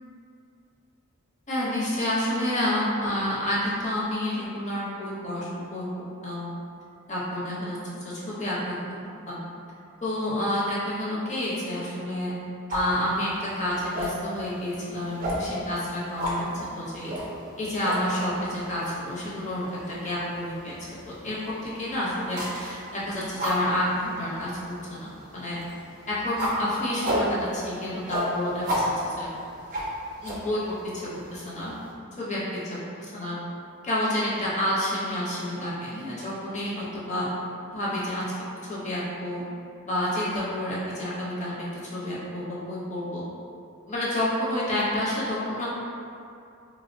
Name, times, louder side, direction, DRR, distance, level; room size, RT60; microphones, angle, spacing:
voice 1, 1.5-5.9 6.2-6.5 7.1-7.8 8.0-8.8 9.3-9.4 10.0-12.3 12.7-17.2 17.6-20.9 21.2-25.6 26.1-29.3 30.2-30.6 30.9-31.7 32.2-32.4 33.1-33.4 33.8-37.3 37.7-38.2 38.7-39.4 39.8-41.7 41.9-43.2 43.9-45.7, left 1 dB, 35° left, -8 dB, 0.7 m, -29 dB
sound 1, 12.7-31.9, equal, 40° right, 0.5 m, -34 dB
3.8 x 2.0 x 2.6 m, 2.5 s
head